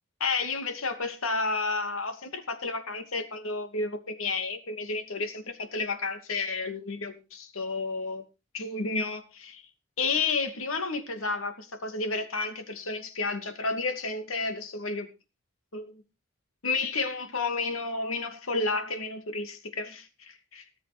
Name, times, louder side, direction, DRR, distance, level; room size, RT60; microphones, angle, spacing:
voice 1, 0.2-8.2 8.5-9.6 10.0-15.1 15.7-16.0 16.6-20.6, left 3 dB, 90° left, 2.6 m, -31 dB
18.5 x 7.5 x 5.1 m
head